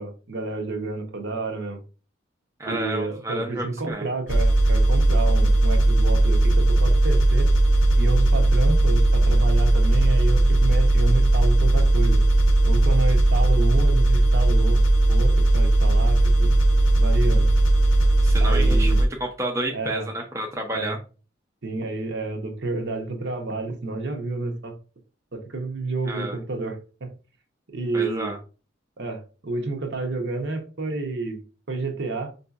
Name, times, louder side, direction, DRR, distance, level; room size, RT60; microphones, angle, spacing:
voice 1, 0.0-1.8 2.6-7.5 8.0-12.2 12.6-14.8 15.1-16.5 17.0-17.5 18.4-19.0 19.7-20.1 20.7-20.9 21.6-24.8 25.3-27.1 27.7-28.3 29.0-31.4 31.7-32.3, right 3 dB, 60° right, 0.8 m, -29 dB
voice 2, 2.6-4.1 18.2-21.0 26.1-26.4 27.9-28.4, right 1 dB, 15° right, 0.5 m, -30 dB
sound 1, 4.3-19.1, right 1 dB, 80° left, 0.6 m, -18 dB
4.8 x 2.7 x 2.3 m
head